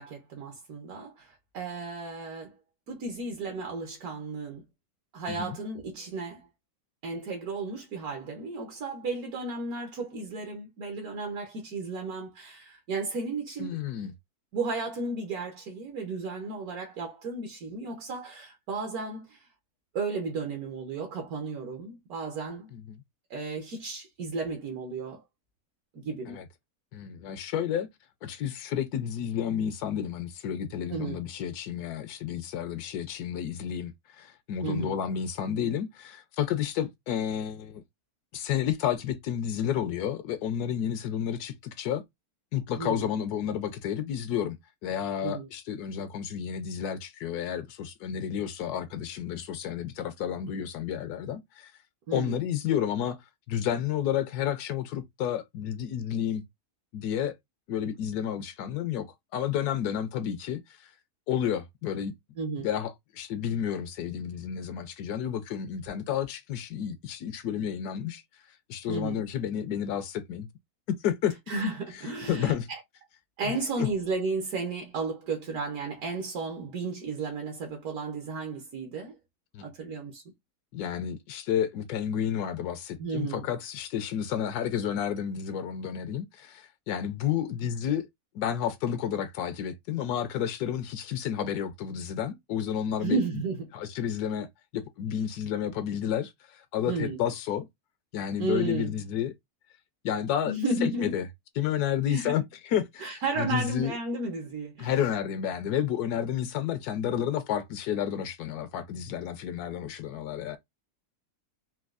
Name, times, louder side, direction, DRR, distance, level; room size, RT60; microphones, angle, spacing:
voice 1, 0.0-2.5 2.9-4.6 5.1-6.5 7.0-13.8 14.5-19.5 19.9-22.7 23.3-25.2 25.9-26.4 30.9-31.2 34.6-35.0 42.8-43.1 45.2-45.5 52.1-52.4 62.4-62.7 68.9-69.2 71.5-72.8 73.4-79.1 79.6-80.2 83.0-83.5 93.0-93.7 96.9-97.2 98.4-98.9 100.5-101.2 102.1-102.3 103.0-104.9, right 3 dB, 75° right, 1.3 m, -33 dB
voice 2, 13.6-14.1 22.7-23.0 26.3-26.4 26.9-27.9 28.2-37.8 38.3-42.0 42.5-44.6 44.8-51.7 52.1-53.2 53.5-56.4 56.9-57.4 57.7-59.1 59.3-60.9 61.3-62.1 62.6-68.2 68.7-70.5 70.9-71.4 72.3-72.7 73.8-73.9 79.5-79.7 80.7-88.1 88.3-93.2 93.7-94.5 94.7-97.7 98.1-99.3 100.0-100.5 100.8-101.3 101.6-103.9 104.8-110.6, left 9 dB, 85° left, 1.1 m, -31 dB
4.3 x 2.3 x 2.3 m
omnidirectional pair, 1.6 m